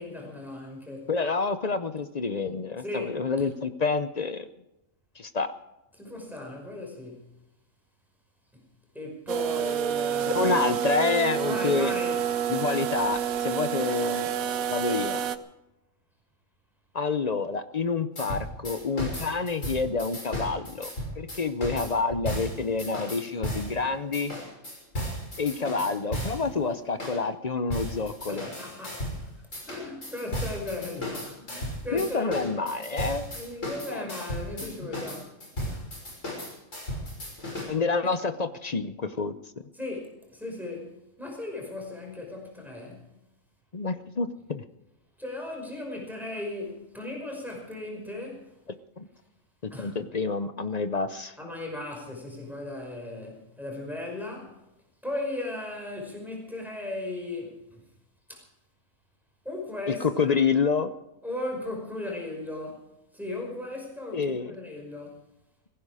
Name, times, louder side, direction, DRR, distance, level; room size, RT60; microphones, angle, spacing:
voice 1, 0.0-1.1 2.8-3.5 6.0-7.3 8.5-8.6 8.9-10.6 11.4-12.2 28.3-29.4 29.6-32.5 33.3-35.8 39.7-43.1 45.2-48.5 49.7-50.0 51.4-54.6 55.0-57.6 58.3-58.5 59.4-60.4 61.2-62.9 63.1-65.2, left 2 dB, ahead, -1 dB, 5.4 m, -37 dB
voice 2, 1.1-4.5 5.2-5.5 10.3-11.9 12.5-14.3 14.7-15.2 16.9-20.9 21.2-24.3 25.4-28.5 31.9-33.3 33.9-34.1 37.7-39.3 43.7-44.6 49.0-49.1 49.6-51.3 59.9-60.9 64.1-64.5, left 4 dB, 40° left, 11 dB, 0.7 m, -28 dB
sound 1, 9.3-15.4, right 9 dB, 75° right, 1.2 m, -28 dB
sound 2, 18.2-23.7 24.1-26.5 27.0-27.2 27.7-29.2 29.5-37.6, equal, 60° left, 6.4 m, -35 dB
18.5 x 16.0 x 4.9 m, 0.92 s
omnidirectional pair, 1.5 m